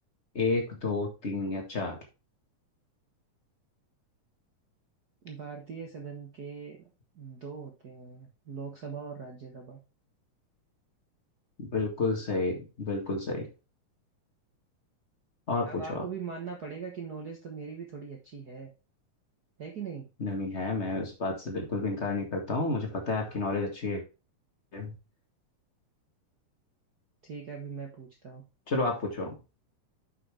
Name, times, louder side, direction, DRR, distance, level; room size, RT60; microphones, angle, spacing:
voice 1, 0.3-2.0 11.6-13.5 15.5-16.0 20.2-24.0 24.7-24.9 28.7-29.4, left 3 dB, 30° left, 2 dB, 1.3 m, -31 dB
voice 2, 5.2-6.9 7.1-9.8 15.6-18.7 19.6-20.1 27.2-28.4, right 5 dB, 65° right, 1 dB, 0.9 m, -41 dB
8.0 x 5.9 x 3.3 m, 0.29 s
omnidirectional pair, 3.7 m